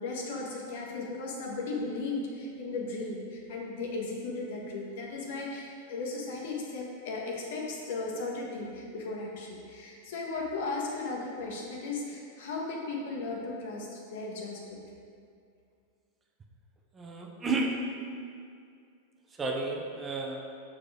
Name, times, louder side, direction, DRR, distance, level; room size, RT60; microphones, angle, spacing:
voice 1, 0.0-14.8, left 3 dB, 70° left, -1 dB, 1.5 m, -36 dB
voice 2, 16.9-17.9 19.4-20.4, right 2 dB, 20° right, 0 dB, 0.8 m, -32 dB
6.5 x 4.9 x 5.0 m, 2.3 s
supercardioid pair, 130°, 0 cm